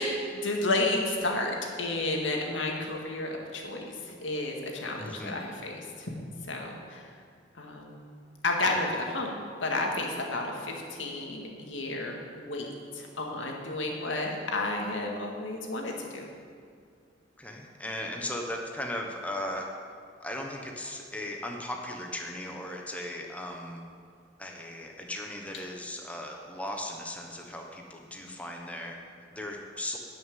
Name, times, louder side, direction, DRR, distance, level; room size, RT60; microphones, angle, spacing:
voice 1, 0.0-6.1 6.5-7.1 7.6-8.1 8.4-9.3 9.6-12.7 12.9-16.3, left 2 dB, 90° left, 1 dB, 2.0 m, -31 dB
voice 2, 5.0-5.4 17.4-19.7 20.2-23.8 24.4-28.9 29.3-30.0, left 1 dB, 10° left, 1 dB, 1.1 m, -37 dB
12.0 x 6.3 x 9.2 m, 2.2 s
head